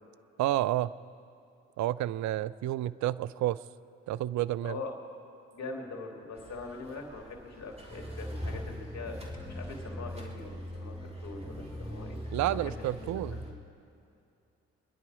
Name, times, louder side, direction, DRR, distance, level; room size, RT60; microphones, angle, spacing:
voice 1, 0.4-0.9 1.8-3.6 4.1-4.8 12.3-13.4, right 14 dB, 65° right, 18 dB, 0.5 m, -30 dB
voice 2, 4.6-4.9 5.5-9.2 9.5-12.2 12.5-13.6, left 3 dB, 55° left, 1 dB, 2.8 m, -42 dB
sound 1, 6.3-13.5, right 1 dB, 20° right, 2.8 m, -49 dB
sound 2, 7.9-13.5, left 1 dB, 5° left, 2.3 m, -41 dB
24.5 x 10.5 x 4.9 m, 2.5 s
hypercardioid pair, 50°, 31 cm